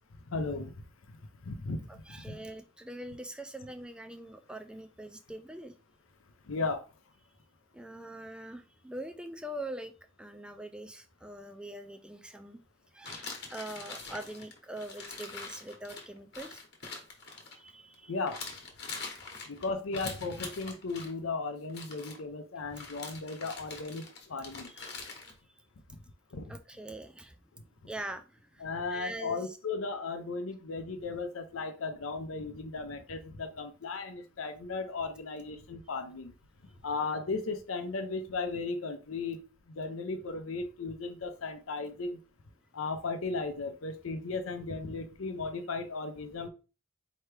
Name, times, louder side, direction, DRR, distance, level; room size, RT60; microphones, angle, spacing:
voice 1, 0.3-0.7 1.4-1.8 2.3-2.4 6.5-6.8 18.1-18.4 19.5-24.7 26.3-26.5 28.6-36.3 36.8-39.4 39.8-42.2 42.7-46.5, left 3 dB, 90° left, 7 dB, 0.6 m, -36 dB
voice 2, 1.9-5.7 7.7-9.9 10.2-12.6 12.9-16.6 17.5-18.1 24.7-24.9 26.5-27.4 27.9-28.6 28.9-29.6, right 1 dB, 5° right, 7 dB, 0.3 m, -43 dB
sound 1, 13.0-18.0 18.3-21.1 21.6-22.2 22.7-25.3, left 4 dB, 55° left, 1.1 m, -44 dB
4.5 x 2.9 x 3.3 m, 0.33 s
head